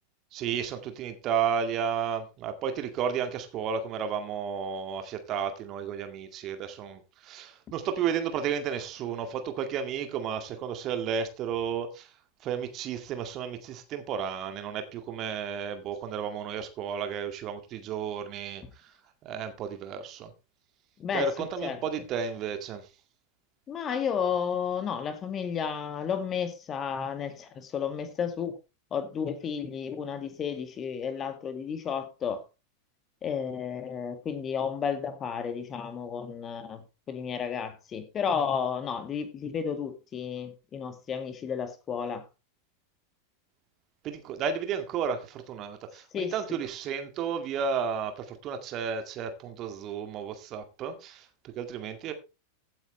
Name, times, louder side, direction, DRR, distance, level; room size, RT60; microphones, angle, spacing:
voice 1, 0.3-12.1 12.4-18.9 19.2-20.3 21.1-22.8 44.0-52.1, right 7 dB, 35° right, 2.1 m, -32 dB
voice 2, 23.7-28.6 28.9-32.4 33.2-36.8 37.1-42.2 46.1-46.6, left 7 dB, 25° left, 2.1 m, -32 dB
16.0 x 8.8 x 3.3 m
figure-of-eight pair, 90°, 0 cm